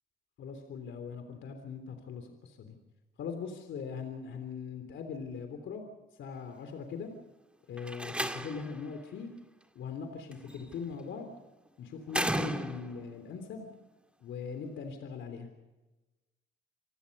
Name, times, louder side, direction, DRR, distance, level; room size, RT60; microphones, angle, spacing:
voice 1, 0.4-2.8 3.2-5.8 6.2-7.1 7.7-9.3 9.8-11.3 11.8-13.7 14.2-15.5, left 6 dB, 75° left, 6 dB, 3.4 m, -40 dB
Slam, 7.8-8.8 10.3-10.7 12.1-13.1, right 1 dB, 5° right, 2.0 m, -34 dB
28.0 x 19.5 x 5.5 m, 1.1 s
cardioid pair, 90°, 20 cm